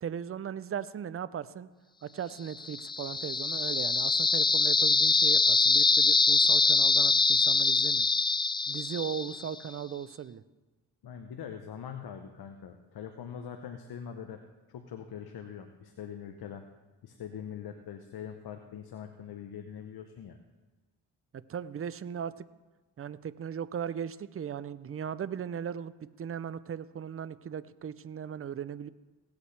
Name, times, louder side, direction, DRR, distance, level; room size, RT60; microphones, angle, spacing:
voice 1, 0.0-1.7 2.0-8.1 8.7-10.4 21.3-22.4 23.0-28.9, right 8 dB, 35° right, 16 dB, 0.6 m, -38 dB
sound 1, 2.6-9.5, left 4 dB, 15° left, 0.3 m, -24 dB
voice 2, 11.0-14.4 14.7-16.7 17.0-20.4, left 8 dB, 65° left, 5 dB, 1.0 m, -43 dB
18.0 x 8.3 x 3.3 m, 1.2 s
supercardioid pair, 55°, 41 cm